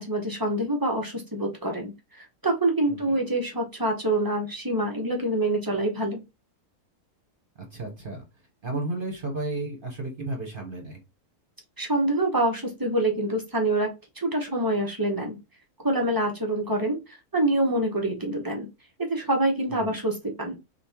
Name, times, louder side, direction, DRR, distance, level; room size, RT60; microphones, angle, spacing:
voice 1, 0.0-6.2 11.8-13.9 14.2-15.4 15.8-18.7 19.1-20.6, right 1 dB, 15° right, 1 dB, 0.9 m, -26 dB
voice 2, 7.7-8.2 8.6-11.0 19.7-19.9, right 2 dB, 40° right, 1 dB, 1.3 m, -32 dB
3.5 x 3.0 x 4.4 m, 0.25 s
omnidirectional pair, 1.6 m